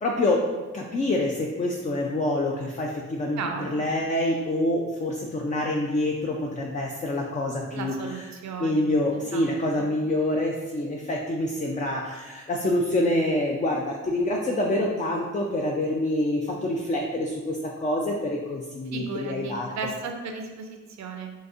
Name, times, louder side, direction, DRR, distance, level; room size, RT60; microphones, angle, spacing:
voice 1, 0.0-7.9 8.6-19.7, left 1 dB, 25° left, 0 dB, 0.4 m, -26 dB
voice 2, 3.4-3.8 7.7-8.9 9.1-9.5 9.7-9.9 18.9-21.3, right 4 dB, 60° right, 3 dB, 0.6 m, -35 dB
3.9 x 2.6 x 2.5 m, 1.2 s
supercardioid pair, 50°, 31 cm